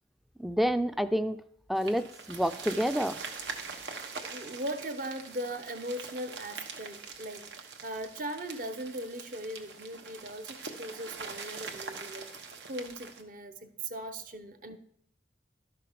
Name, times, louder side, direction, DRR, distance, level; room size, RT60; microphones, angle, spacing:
voice 1, 0.4-1.4 1.7-3.2, equal, ahead, 0.4 m, -28 dB
sound 1, 1.8-13.2, right 4 dB, 80° right, 1.2 m, -43 dB
voice 2, 4.3-14.8, right 1 dB, 50° right, 0.8 m, -39 dB
12.0 x 5.8 x 5.0 m
head